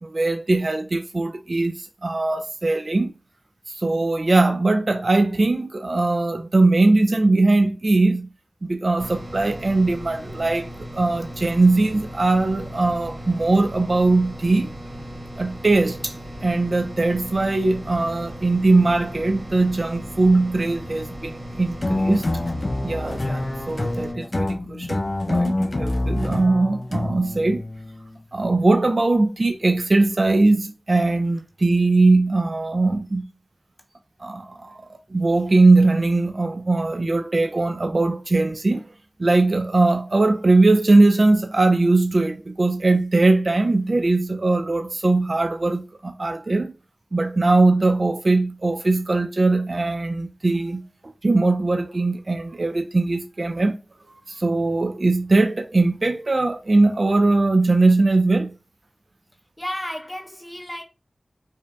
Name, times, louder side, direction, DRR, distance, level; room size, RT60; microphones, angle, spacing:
voice 1, 0.0-3.1 3.7-8.3 8.7-10.7 10.9-14.7 15.4-16.1 16.4-22.2 22.8-25.0 25.3-27.6 28.3-33.2 34.2-38.9 39.2-46.7 47.1-53.8 54.3-58.5, right 2 dB, 55° right, 0.4 m, -20 dB
sound 1, 9.0-24.1, equal, 70° right, 1.3 m, -37 dB
sound 2, 21.8-28.2, left 2 dB, 50° left, 0.5 m, -26 dB
voice 2, 59.6-60.8, equal, 10° left, 0.6 m, -32 dB
4.9 x 2.7 x 2.2 m
wide cardioid pair, 55°, 0 cm